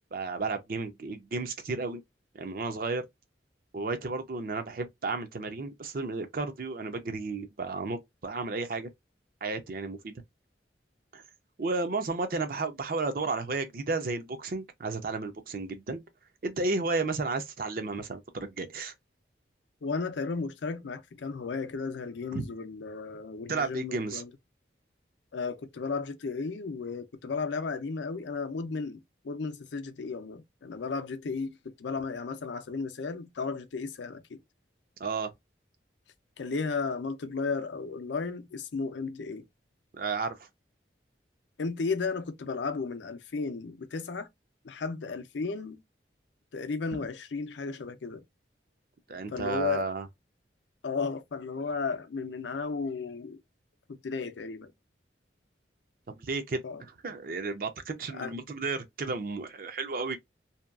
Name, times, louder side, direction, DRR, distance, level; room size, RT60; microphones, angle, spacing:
voice 1, 0.1-2.0 2.3-3.0 3.7-8.9 9.4-10.1 11.1-11.2 11.6-16.0 16.4-18.9 22.3-22.5 23.5-24.2 35.0-35.3 39.9-40.5 49.1-50.1 56.1-60.2, right 3 dB, 50° right, 0.5 m, -33 dB
voice 2, 19.8-24.3 25.3-34.4 36.4-39.5 41.6-44.3 44.6-45.8 46.5-48.2 49.3-49.9 50.8-53.4 53.9-54.7 56.6-56.8 58.1-58.3, left 4 dB, 80° left, 0.5 m, -34 dB
2.8 x 2.3 x 2.3 m
head